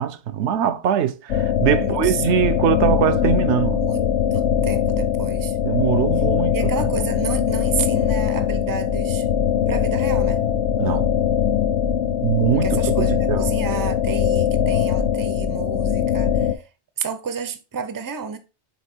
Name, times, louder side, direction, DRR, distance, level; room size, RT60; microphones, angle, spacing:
voice 1, 0.0-3.8 5.6-6.7 10.8-11.1 12.2-13.5, right 9 dB, 75° right, 0.9 m, -22 dB
sound 1, 1.3-16.5, left 8 dB, 85° left, 1.1 m, -21 dB
voice 2, 1.8-2.4 3.7-4.1 4.3-5.6 6.5-9.3 9.7-10.4 12.6-16.6 17.0-18.4, right 6 dB, 25° right, 0.5 m, -31 dB
5.9 x 4.0 x 4.4 m
omnidirectional pair, 1.2 m